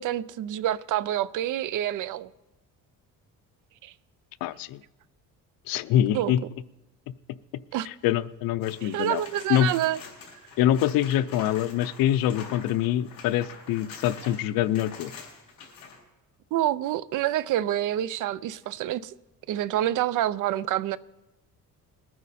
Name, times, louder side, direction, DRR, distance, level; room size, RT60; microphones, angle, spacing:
voice 1, 0.0-2.3 3.8-3.9 6.1-6.3 7.7-7.9 8.8-10.0 16.5-19.1 19.5-21.0, right 12 dB, 65° right, 0.5 m, -27 dB
voice 2, 4.4-4.8 5.7-6.4 7.9-9.2 9.5-9.7 10.6-15.1, left 12 dB, 85° left, 0.6 m, -25 dB
sound 1, 8.6-16.0 18.6-18.7, left 5 dB, 55° left, 4.5 m, -45 dB
21.0 x 9.4 x 4.2 m
cardioid pair, 155°, 34 cm